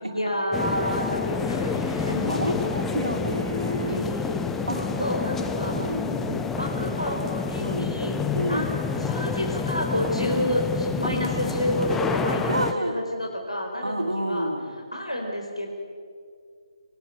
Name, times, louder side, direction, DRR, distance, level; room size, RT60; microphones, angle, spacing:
voice 1, 0.0-2.5 3.8-4.4 4.7-5.7 6.3-8.2 8.4-14.5 14.9-15.7, left 1 dB, 90° left, 1 dB, 4.5 m, -29 dB
sound 1, 0.5-12.7, left 5 dB, 5° left, 0.7 m, -28 dB
sound 2, 1.3-5.7, left 2 dB, 55° left, 4.1 m, -42 dB
voice 2, 2.3-4.1 4.7-4.8 5.5-6.3 7.6-8.0 8.3-8.8 12.5-13.0 13.8-14.8, right 1 dB, 85° right, 3 dB, 3.3 m, -29 dB
23.5 x 20.0 x 8.0 m, 2.1 s
figure-of-eight pair, 145°, 3 cm